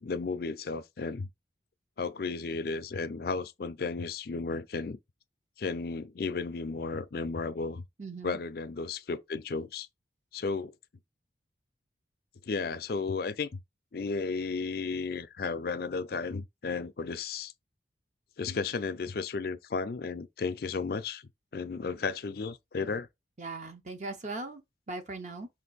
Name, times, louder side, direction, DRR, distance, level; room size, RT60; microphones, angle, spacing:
voice 1, 0.0-1.3 2.0-5.0 5.6-7.8 8.2-9.9 10.3-10.7 12.4-13.6 13.9-17.5 18.4-21.2 21.5-23.1, left 4 dB, 55° left, 0.4 m, -34 dB
voice 2, 8.0-8.4 23.4-24.6 24.9-25.5, right 3 dB, 40° right, 0.7 m, -39 dB
5.1 x 2.6 x 4.0 m
head